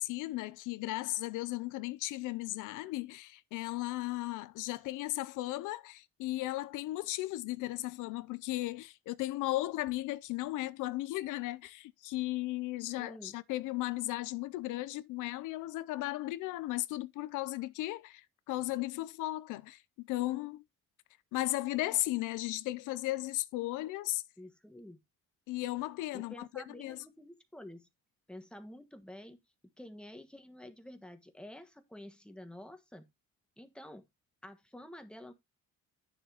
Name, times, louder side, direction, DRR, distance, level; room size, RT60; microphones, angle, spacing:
voice 1, 0.0-20.6 21.3-24.2 25.5-27.0, left 17 dB, 90° left, 0.5 m, -36 dB
voice 2, 13.0-13.4 24.4-25.0 26.1-27.9 28.3-29.4 29.8-33.1 33.6-34.1 34.4-35.3, left 1 dB, 5° left, 1.4 m, -49 dB
9.3 x 6.8 x 2.8 m
cardioid pair, 90°, 30 cm